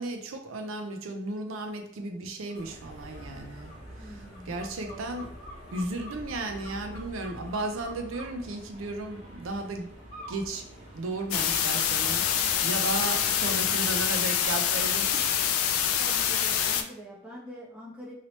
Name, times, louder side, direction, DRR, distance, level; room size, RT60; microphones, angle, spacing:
voice 1, 0.0-5.3 5.7-9.9 10.3-12.2 12.6-15.3, right 2 dB, 75° right, 5 dB, 0.5 m, -35 dB
sound 1, 2.5-2.7 3.1-8.3 10.1-10.4 10.9-11.6, equal, 35° left, 0.8 m, -48 dB
sound 2, 2.5-14.1, equal, 30° right, 1.0 m, -47 dB
voice 2, 4.0-5.2 13.4-13.5 16.0-18.1, right 1 dB, 5° right, -5 dB, 0.4 m, -45 dB
sound 3, 11.3-16.8, left 9 dB, 90° left, 0.4 m, -26 dB
2.9 x 2.8 x 3.0 m, 0.74 s
head